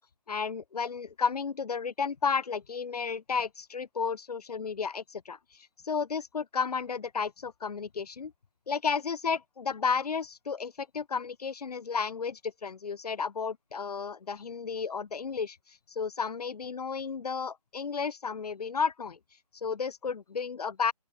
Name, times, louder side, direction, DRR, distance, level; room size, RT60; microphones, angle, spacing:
voice 1, 0.3-8.3 8.7-19.2 19.5-20.9, left 5 dB, 75° left, 0.7 m, -33 dB
open air
figure-of-eight pair, 155°, 20 cm